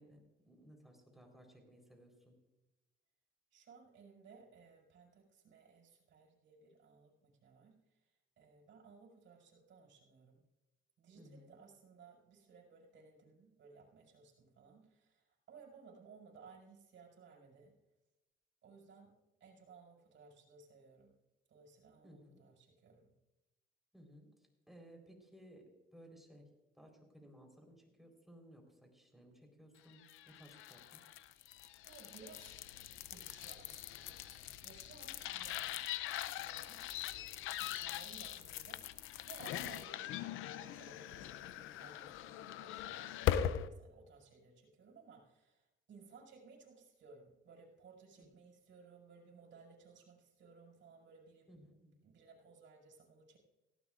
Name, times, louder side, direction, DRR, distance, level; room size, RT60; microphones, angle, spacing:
voice 1, 0.0-2.4 11.1-11.6 22.0-22.4 23.9-24.3 24.7-25.7 25.9-26.4 26.8-31.0 48.2-48.3 51.5-52.0, equal, ahead, 2 dB, 4.2 m, -59 dB
voice 2, 3.5-8.1 8.4-10.4 11.0-17.8 18.6-21.2 21.5-23.1 31.8-32.6 33.1-35.9 36.4-37.3 37.6-51.5 52.0-53.4, right 5 dB, 70° right, -1 dB, 5.4 m, -60 dB
sound 1, 30.0-43.7, left 11 dB, 85° left, 0.6 m, -41 dB
18.0 x 16.0 x 2.5 m, 1.0 s
cardioid pair, 90°, 20 cm